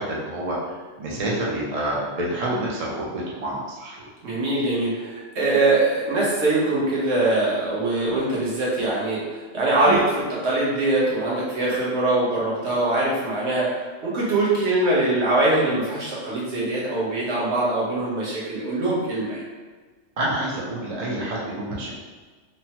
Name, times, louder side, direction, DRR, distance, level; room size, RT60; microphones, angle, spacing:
voice 1, 0.0-4.1 9.8-10.0 20.2-21.9, right 1 dB, 40° right, -5 dB, 0.5 m, -28 dB
voice 2, 4.2-9.2 9.5-13.7 14.0-19.4, right 2 dB, 65° right, -6 dB, 1.2 m, -22 dB
3.2 x 2.1 x 2.8 m, 1.4 s
omnidirectional pair, 1.3 m